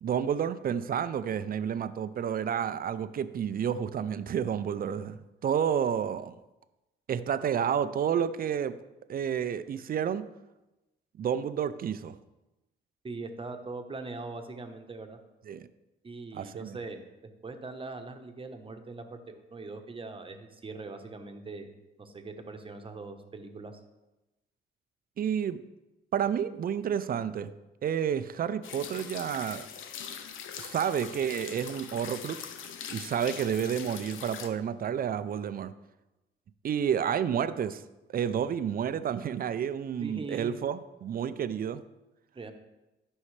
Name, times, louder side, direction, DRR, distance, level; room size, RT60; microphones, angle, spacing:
voice 1, 0.0-6.3 7.1-8.7 9.1-10.2 11.2-12.2 15.5-15.6 16.3-16.8 25.2-25.6 26.1-27.5 27.8-29.7 30.6-32.4 32.9-35.7 36.6-37.8 38.1-41.8, right 8 dB, 45° right, 12 dB, 0.5 m, -30 dB
voice 2, 13.0-15.2 16.0-17.0 17.4-21.7 22.0-23.8 40.0-40.5 42.3-42.5, right 3 dB, 25° right, 5 dB, 1.0 m, -41 dB
sound 1, 28.6-34.5, left 8 dB, 80° left, 0.7 m, -42 dB
13.0 x 5.4 x 3.3 m, 1.0 s
cardioid pair, 90°, 20 cm